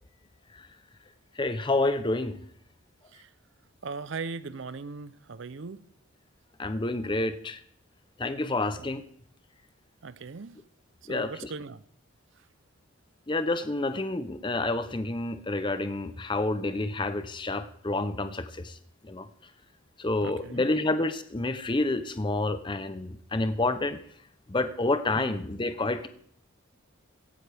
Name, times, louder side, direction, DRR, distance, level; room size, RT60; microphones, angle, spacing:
voice 1, 1.4-2.4 6.6-7.6 8.2-9.0 11.1-11.5 13.3-18.8 19.0-19.3 20.0-24.0 24.5-26.1, left 2 dB, 20° left, 11 dB, 0.6 m, -29 dB
voice 2, 3.8-5.8 8.8-8.9 10.0-10.6 11.1-11.8 20.2-20.7 25.2-25.3, right 4 dB, 60° right, 14 dB, 0.5 m, -39 dB
16.5 x 13.0 x 3.4 m, 0.62 s
head